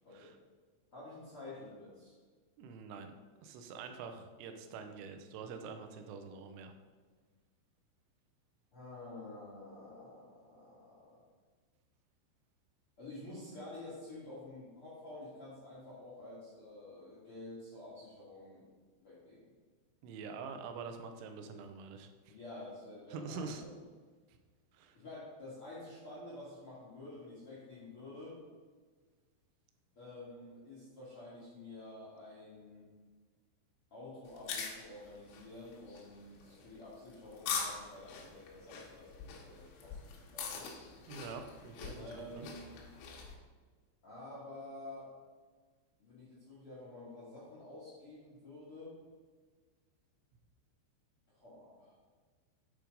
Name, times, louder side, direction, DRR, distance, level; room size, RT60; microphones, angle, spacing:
voice 1, 0.9-2.2 8.7-11.2 13.0-18.7 19.0-19.5 22.3-23.8 24.9-28.4 29.9-32.9 33.9-40.7 42.0-42.7 44.0-45.1 46.0-49.0 51.3-52.0, left 2 dB, 50° left, -9 dB, 1.6 m, -49 dB
voice 2, 2.6-3.1 3.4-6.7 20.0-22.4 23.1-23.6 24.7-25.0 41.1-42.5, right 5 dB, 90° right, 7 dB, 3.3 m, -46 dB
sound 1, 34.3-43.3, left 6 dB, 80° left, 3.5 m, -43 dB
8.8 x 4.7 x 5.1 m, 1.4 s
omnidirectional pair, 5.4 m